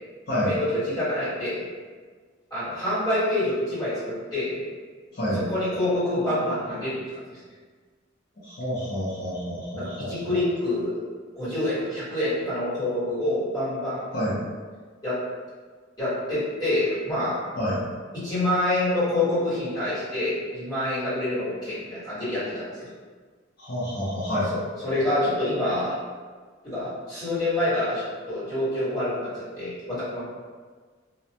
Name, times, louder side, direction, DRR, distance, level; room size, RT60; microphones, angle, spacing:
voice 1, 0.4-1.6 2.5-4.6 5.3-7.0 7.3-7.4 9.7-10.9 11.3-14.0 15.0-15.2 16.0-17.4 18.1-22.9 24.8-25.9 26.6-30.2, left 1 dB, 20° left, -13 dB, 1.3 m, -27 dB
voice 2, 5.1-5.4 8.4-10.1 14.1-14.3 17.6-17.8 23.6-24.5, equal, 55° left, -9 dB, 0.7 m, -28 dB
2.3 x 2.1 x 2.7 m, 1.5 s
head